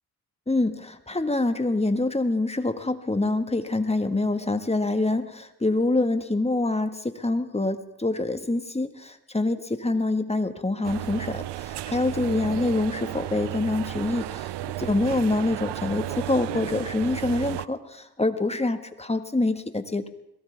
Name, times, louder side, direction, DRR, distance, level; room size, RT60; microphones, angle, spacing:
voice 1, 0.5-14.5 14.8-20.1, left 2 dB, 15° left, 8 dB, 1.7 m, -26 dB
sound 1, 10.8-17.7, right 15 dB, 75° right, 0.6 m, -33 dB
21.5 x 17.5 x 3.5 m, 0.85 s
supercardioid pair, 55°, 42 cm